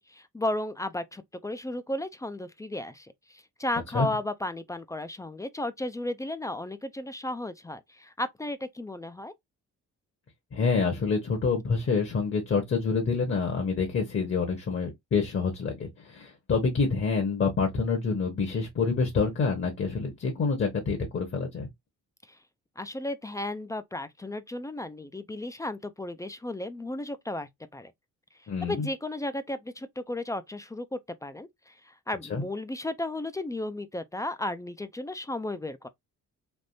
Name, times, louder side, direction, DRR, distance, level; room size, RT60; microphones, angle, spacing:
voice 1, 0.0-9.3 22.3-22.4 22.8-27.9 28.6-35.9, left 1 dB, 10° left, 0.3 m, -34 dB
voice 2, 10.5-21.7 28.5-28.9 32.3-32.4, left 4 dB, 45° left, 1.1 m, -27 dB
3.5 x 2.5 x 2.6 m
cardioid pair, 90°, 30 cm